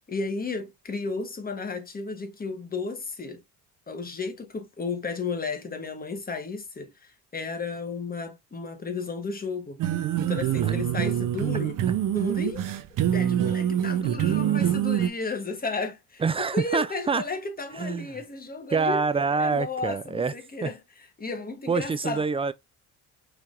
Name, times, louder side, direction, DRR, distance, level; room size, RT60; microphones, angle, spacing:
voice 1, 0.1-3.4 3.9-9.8 10.2-11.8 12.1-12.6 13.1-19.1 19.4-20.8 21.2-22.2, left 3 dB, 25° left, 1.3 m, -33 dB
sound 1, 9.8-15.1, right 10 dB, 60° right, 0.7 m, -25 dB
voice 2, 16.2-17.2 17.8-18.1 18.7-20.3 20.6-20.7 21.7-22.5, right 4 dB, 15° right, 0.3 m, -26 dB
4.8 x 3.4 x 2.4 m
cardioid pair, 90°, 36 cm